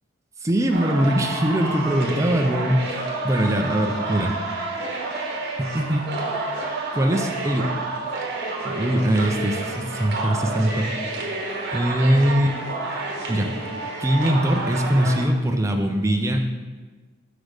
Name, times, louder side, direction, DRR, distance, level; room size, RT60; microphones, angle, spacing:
voice 1, 0.4-4.4 5.6-6.1 6.9-7.7 8.6-10.9 11.7-12.6 13.3-13.5 14.0-16.5, equal, 15° right, 3 dB, 0.5 m, -22 dB
sound 1, 0.7-15.3, right 2 dB, 50° right, 1.0 m, -29 dB
6.2 x 5.0 x 4.9 m, 1.3 s
head